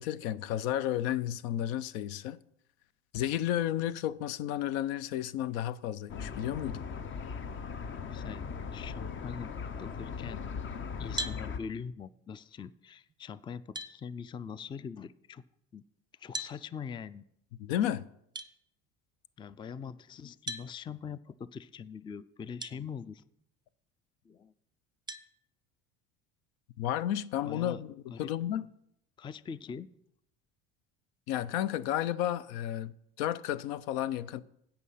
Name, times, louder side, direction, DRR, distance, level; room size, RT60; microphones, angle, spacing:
voice 1, 0.0-2.4 3.1-6.8 17.6-18.0 26.8-28.6 31.3-32.9 33.2-34.4, left 11 dB, 85° left, 0.6 m, -32 dB
sound 1, 6.1-11.6, left 6 dB, 35° left, 0.8 m, -39 dB
voice 2, 8.0-8.5 8.7-10.4 11.0-15.4 15.7-15.8 16.1-17.2 19.4-23.2 24.2-24.5 27.4-27.8 28.1-28.3 29.2-29.9, left 6 dB, 15° left, 0.3 m, -43 dB
sound 2, 11.2-11.4 13.1-13.2 13.7-14.0 16.3-16.6 18.3-18.5 20.5-20.7 22.6-22.7 23.4-23.5 25.1-25.3, right 1 dB, 15° right, 0.8 m, -37 dB
16.0 x 5.7 x 5.6 m
supercardioid pair, 100°, 32 cm